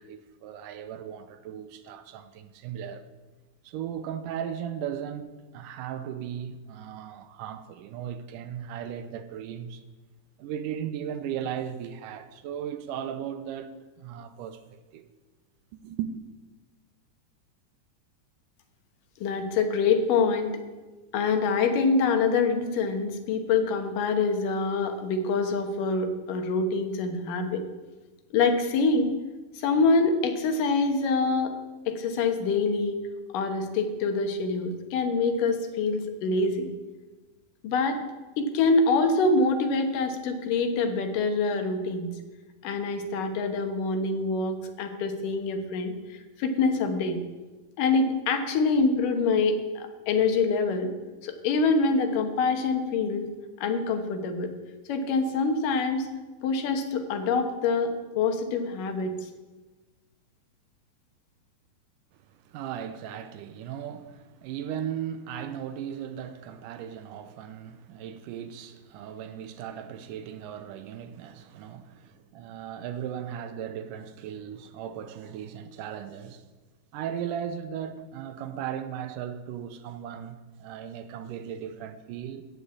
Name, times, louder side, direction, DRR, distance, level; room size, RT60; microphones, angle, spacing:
voice 1, 0.0-3.1 3.6-9.8 10.4-15.1 15.8-16.1 62.3-76.5 76.9-82.5, right 9 dB, 85° right, 2.3 m, -37 dB
voice 2, 19.2-20.6 21.1-27.6 28.3-29.1 29.6-31.6 31.9-33.0 33.3-36.7 37.6-38.0 38.4-42.1 42.6-45.9 46.4-47.2 47.8-50.9 51.2-53.3 53.6-54.5 54.9-56.1 56.4-59.1, left 4 dB, 80° left, 2.7 m, -25 dB
14.5 x 5.1 x 8.5 m
omnidirectional pair, 3.8 m